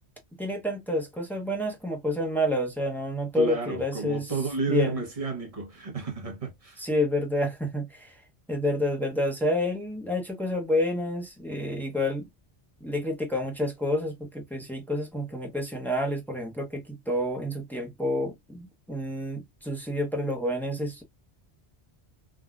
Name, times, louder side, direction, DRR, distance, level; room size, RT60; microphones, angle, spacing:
voice 1, 0.4-4.3 4.7-5.0 6.8-8.2 8.5-12.3 12.8-21.0, left 1 dB, ahead, 0.7 m, -29 dB
voice 2, 3.3-6.8, right 4 dB, 35° right, 0.9 m, -31 dB
3.7 x 2.2 x 2.3 m
omnidirectional pair, 1.1 m